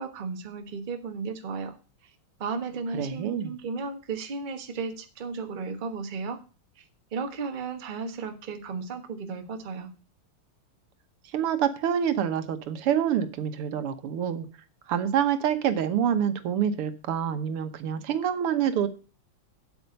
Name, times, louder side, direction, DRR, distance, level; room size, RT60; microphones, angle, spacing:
voice 1, 0.0-1.7 2.4-6.4 6.8-6.9 7.1-9.9, right 4 dB, 30° right, 6 dB, 1.0 m, -34 dB
voice 2, 2.9-3.5 11.3-14.5 14.9-18.9, right 9 dB, 85° right, 10 dB, 2.0 m, -26 dB
8.1 x 8.0 x 5.2 m, 0.36 s
omnidirectional pair, 2.4 m